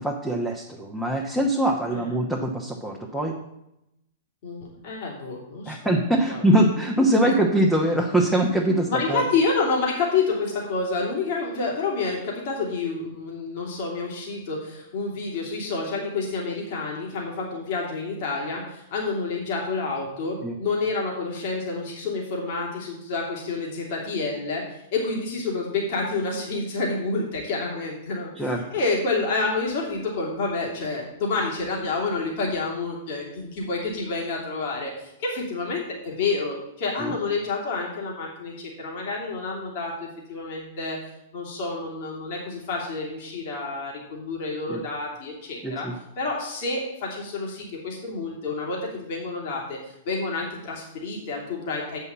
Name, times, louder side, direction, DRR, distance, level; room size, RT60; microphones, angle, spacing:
voice 1, 0.0-3.4 5.7-9.2 20.4-20.5 28.4-28.7 37.0-37.1 44.7-44.8 45.6-45.9, right 1 dB, ahead, -1 dB, 1.1 m, -23 dB
voice 2, 4.4-5.8 6.3-6.4 7.1-7.3 8.9-41.0 41.3-45.9 46.2-52.0, left 3 dB, 50° left, -2 dB, 2.8 m, -29 dB
8.1 x 5.6 x 7.3 m, 0.84 s
figure-of-eight pair, 105°, 0 cm